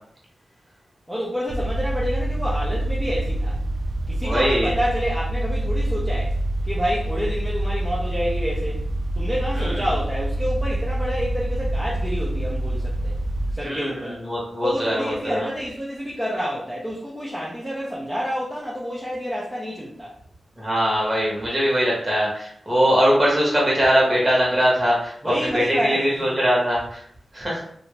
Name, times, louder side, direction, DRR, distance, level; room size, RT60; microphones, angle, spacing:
voice 1, 1.1-3.6 4.1-6.3 6.6-8.8 9.1-13.2 13.5-14.2 14.6-20.1 25.2-26.3, equal, 10° right, -6 dB, 0.6 m, -28 dB
sound 1, 1.5-13.5, right 1 dB, 70° right, 0.5 m, -26 dB
voice 2, 4.2-4.7 9.6-9.8 13.6-15.5 20.6-27.0 27.3-27.6, equal, 25° right, -5 dB, 1.3 m, -21 dB
2.7 x 2.5 x 3.2 m, 0.66 s
wide cardioid pair, 125°, 0 cm